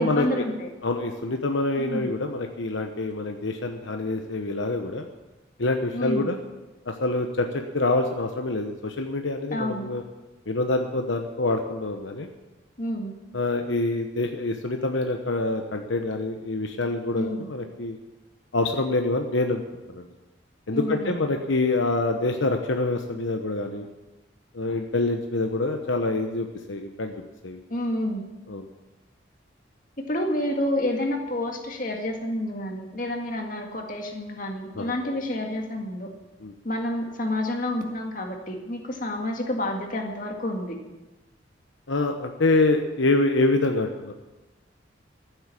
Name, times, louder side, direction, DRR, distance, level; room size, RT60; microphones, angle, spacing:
voice 1, 0.0-0.7 1.8-2.1 5.9-6.3 9.5-9.8 12.8-13.1 17.1-17.5 20.7-21.2 27.7-28.2 30.0-36.1 36.6-40.8, left 1 dB, 45° left, 2 dB, 2.0 m, -29 dB
voice 2, 0.8-5.1 5.6-6.4 6.9-10.0 10.5-12.3 13.3-18.0 18.5-19.6 19.9-20.1 20.7-23.9 24.5-27.6 28.5-28.6 34.8-35.2 36.4-36.5 41.9-44.1, left 2 dB, 80° left, 4 dB, 1.0 m, -26 dB
14.5 x 8.0 x 8.5 m, 1.1 s
head